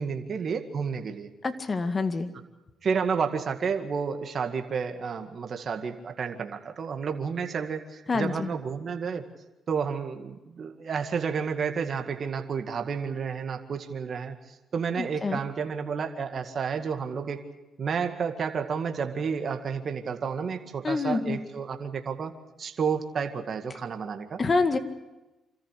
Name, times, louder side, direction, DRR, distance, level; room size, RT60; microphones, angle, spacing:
voice 1, 0.0-1.3 2.8-9.2 9.7-14.4 14.7-17.5 17.8-22.3 22.6-24.4, right 6 dB, 55° right, 5 dB, 2.0 m, -31 dB
voice 2, 1.4-2.3 8.1-8.5 15.0-15.4 20.8-21.4 24.4-24.8, left 4 dB, 40° left, 8 dB, 2.0 m, -26 dB
26.5 x 14.0 x 8.4 m, 1.0 s
supercardioid pair, 65°, 0 cm